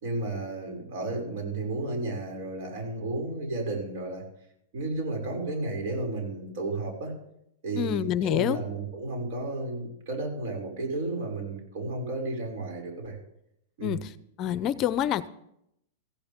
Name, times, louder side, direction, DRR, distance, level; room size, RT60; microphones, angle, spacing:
voice 1, 0.0-4.2 4.7-7.1 7.6-13.2 13.8-14.0, right 2 dB, 60° right, 2 dB, 6.1 m, -33 dB
voice 2, 7.8-8.6 13.8-14.1 14.4-15.3, left 10 dB, 35° left, 16 dB, 0.6 m, -27 dB
17.0 x 15.0 x 3.6 m, 0.76 s
supercardioid pair, 140°, 0 cm